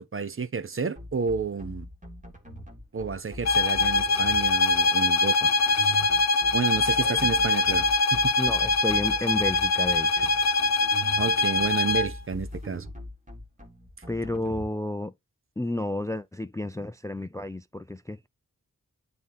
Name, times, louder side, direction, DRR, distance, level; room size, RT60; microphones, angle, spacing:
voice 1, 0.0-1.9 2.9-6.0 6.5-7.8 8.1-8.3 11.2-12.9, right 5 dB, 40° right, 0.6 m, -31 dB
sound 1, 1.0-14.7, equal, 25° right, 1.7 m, -41 dB
sound 2, 3.4-12.2, left 3 dB, 55° left, 0.6 m, -23 dB
voice 2, 8.4-10.3 14.1-15.1 15.6-18.2, left 1 dB, 10° left, 0.3 m, -31 dB
9.3 x 3.6 x 4.1 m
wide cardioid pair, 95°, 33 cm